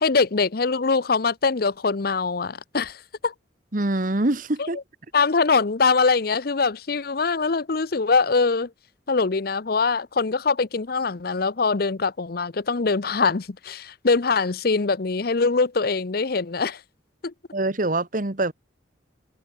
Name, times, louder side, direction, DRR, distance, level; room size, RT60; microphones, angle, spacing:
voice 1, 0.0-3.0 3.2-3.3 4.6-4.7 5.1-8.7 9.1-16.8 17.2-17.3, left 4 dB, 55° left, 0.7 m, -23 dB
voice 2, 3.7-4.8 17.5-18.5, right 2 dB, 45° right, 1.4 m, -24 dB
head